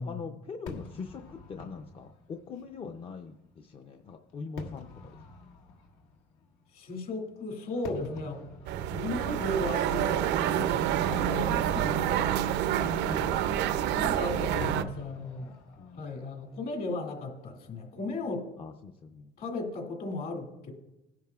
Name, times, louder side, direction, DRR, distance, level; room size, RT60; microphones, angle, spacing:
voice 1, 0.0-5.2 15.8-16.2 18.6-19.3, left 5 dB, 35° left, 4 dB, 0.5 m, -42 dB
Fireworks, 0.7-18.0, left 3 dB, 90° left, 1.7 m, -50 dB
voice 2, 6.7-8.5 8.9-12.2 12.8-13.4 14.0-15.5 16.0-18.5 19.4-20.7, left 2 dB, 55° left, 2 dB, 2.3 m, -36 dB
sound 1, 8.7-14.8, right 10 dB, 80° right, 0.5 m, -28 dB
17.5 x 10.5 x 2.3 m, 0.97 s
cardioid pair, 145°, 18 cm